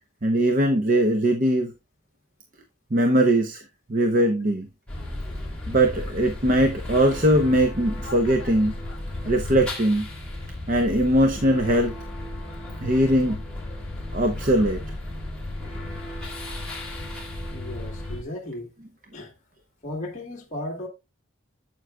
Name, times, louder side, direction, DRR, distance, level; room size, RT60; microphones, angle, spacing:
voice 1, 0.2-1.7 2.9-3.6 3.9-4.7 5.7-8.7 9.2-10.1 10.7-11.9 12.8-13.4 14.1-14.8, right 1 dB, 40° right, 0.8 m, -21 dB
sound 1, 4.9-18.2, left 1 dB, 5° left, 2.9 m, -34 dB
voice 2, 17.5-18.7 19.1-19.3 19.8-20.9, left 1 dB, 35° left, 1.5 m, -35 dB
9.2 x 7.8 x 2.3 m
head